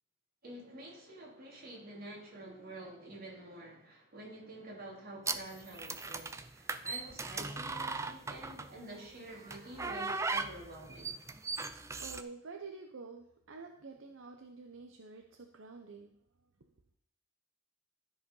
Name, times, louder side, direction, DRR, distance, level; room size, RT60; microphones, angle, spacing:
voice 1, 0.4-11.2, right 1 dB, 45° right, -3 dB, 3.2 m, -48 dB
sound 1, 5.3-8.8 9.5-12.2, right 3 dB, 15° right, 0.4 m, -38 dB
voice 2, 12.0-16.1, right 4 dB, 70° right, 3 dB, 0.8 m, -48 dB
13.0 x 4.9 x 5.5 m, 0.72 s
head